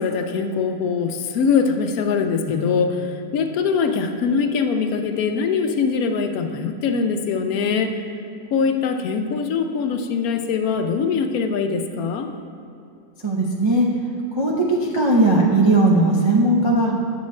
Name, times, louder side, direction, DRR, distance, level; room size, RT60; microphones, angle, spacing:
voice 1, 0.0-7.9 8.5-12.3, left 5 dB, 75° left, 6 dB, 1.0 m, -22 dB
voice 2, 13.2-13.9 14.4-14.5 14.9-16.9, right 2 dB, 40° right, -4 dB, 0.4 m, -17 dB
8.6 x 7.3 x 3.1 m, 2.6 s
omnidirectional pair, 1.6 m